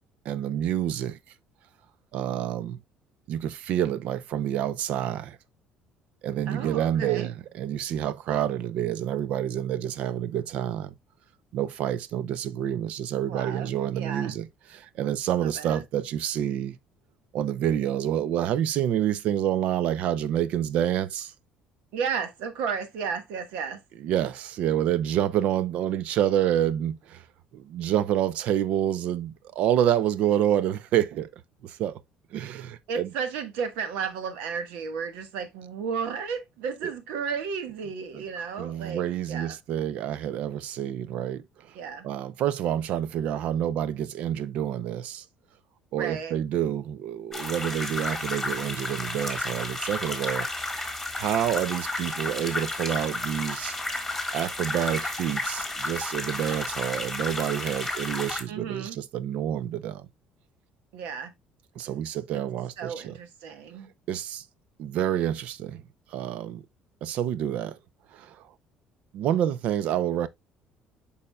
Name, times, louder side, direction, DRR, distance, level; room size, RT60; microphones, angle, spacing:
voice 1, 0.2-1.2 2.1-2.8 3.3-5.4 6.2-10.9 11.5-16.8 17.3-21.3 24.0-27.3 27.5-31.3 31.6-32.0 32.3-33.1 36.8-36.9 38.1-38.2 38.6-41.8 42.0-45.3 45.9-50.5 51.1-53.8 54.3-60.1 61.8-63.2 64.1-64.4 64.8-65.8 66.1-66.6 67.0-67.8 68.1-68.5 69.1-70.3, right 10 dB, 60° right, 0.5 m, -28 dB
voice 2, 6.5-7.3 13.3-14.3 15.3-15.8 21.9-23.8 32.9-39.6 41.7-42.1 46.0-46.3 58.5-59.0 60.9-61.3 62.3-62.4 62.8-63.9, right 6 dB, 90° right, 1.4 m, -33 dB
sound 1, 47.3-58.4, left 2 dB, 5° left, 1.7 m, -32 dB
8.6 x 5.5 x 2.3 m
cardioid pair, 145°, 2 cm